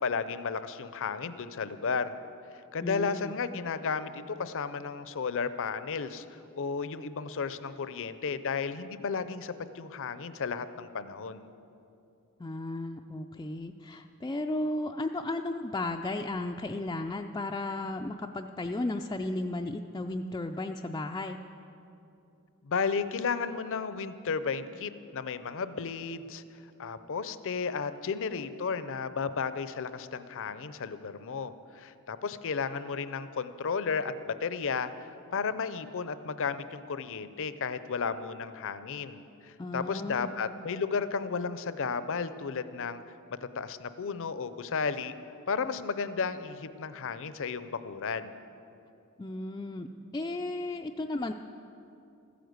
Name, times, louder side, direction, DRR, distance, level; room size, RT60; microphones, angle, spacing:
voice 1, 0.0-2.1 2.7-11.5 22.6-26.4 26.8-43.0 43.5-45.1 45.5-48.3, left 5 dB, 60° left, 13 dB, 0.6 m, -33 dB
voice 2, 2.8-3.3 12.4-21.4 39.6-40.3 49.2-51.3, left 2 dB, 15° left, 3 dB, 0.3 m, -34 dB
14.0 x 10.0 x 7.9 m, 2.7 s
head